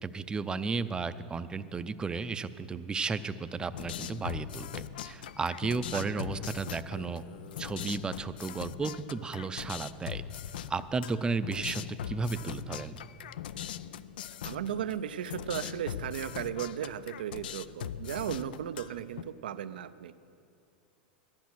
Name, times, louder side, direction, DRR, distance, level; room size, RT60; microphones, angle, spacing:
voice 1, 0.0-7.2 7.6-10.2 10.7-13.0, right 4 dB, 15° right, 12 dB, 0.5 m, -34 dB
sound 1, 3.7-19.2, left 10 dB, 75° left, 0.4 m, -41 dB
voice 2, 5.9-6.2 14.4-20.1, right 10 dB, 80° right, 14 dB, 0.5 m, -36 dB
12.0 x 10.5 x 6.1 m, 2.6 s
hypercardioid pair, 105°, 5 cm